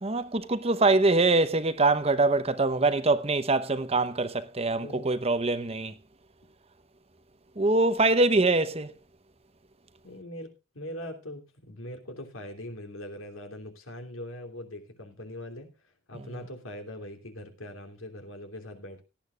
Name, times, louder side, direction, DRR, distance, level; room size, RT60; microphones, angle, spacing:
voice 1, 0.0-5.9 7.6-8.9, right 3 dB, 30° right, 0.9 m, -24 dB
voice 2, 4.7-5.1 10.0-15.7 16.1-19.0, left 1 dB, 75° left, 3.1 m, -41 dB
17.5 x 12.5 x 2.4 m
head